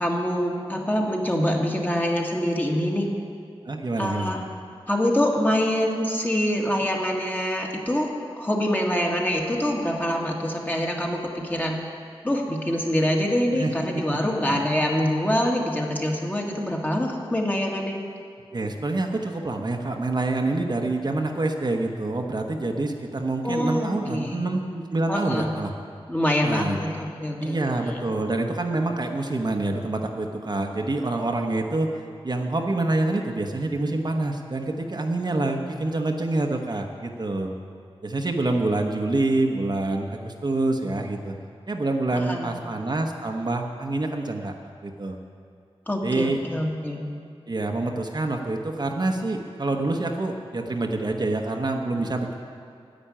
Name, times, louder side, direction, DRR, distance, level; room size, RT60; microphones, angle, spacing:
voice 1, 0.0-3.1 4.0-4.5 4.9-8.1 8.4-11.8 12.2-18.0 23.4-24.4 25.1-25.6 26.1-27.6 27.8-28.1 42.1-42.5 45.9-47.0, equal, 15° left, 0 dB, 1.8 m, -25 dB
voice 2, 3.7-4.3 13.5-14.2 14.5-14.6 18.5-25.7 26.4-26.8 27.4-31.9 32.2-37.5 38.0-41.3 41.7-44.5 44.8-45.2 46.0-46.4 47.5-52.3, right 2 dB, 45° right, 2 dB, 1.1 m, -26 dB
10.5 x 8.0 x 9.9 m, 2.3 s
wide cardioid pair, 75°, 10 cm